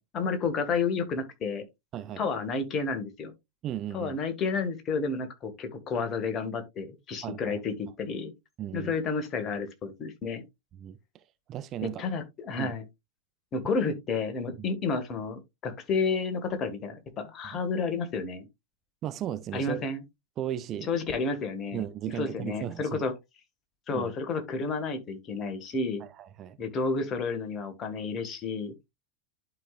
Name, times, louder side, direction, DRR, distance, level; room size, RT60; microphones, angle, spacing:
voice 1, 0.0-1.6 2.2-3.3 3.9-8.3 8.7-10.4 12.0-12.8 13.5-18.4 19.5-20.0 20.9-21.8 22.1-23.1 23.9-26.0 26.6-28.7, left 4 dB, 30° left, 1.7 m, -31 dB
voice 2, 1.9-2.2 3.6-4.2 7.2-7.6 8.6-9.0 10.7-11.0 11.5-12.0 12.6-12.7 13.9-14.0 17.5-17.6 19.0-19.9 20.4-20.9 21.7-23.0 23.9-24.1 26.0-26.6, right 11 dB, 30° right, 0.6 m, -35 dB
11.5 x 4.9 x 2.4 m
figure-of-eight pair, 90°, 0 cm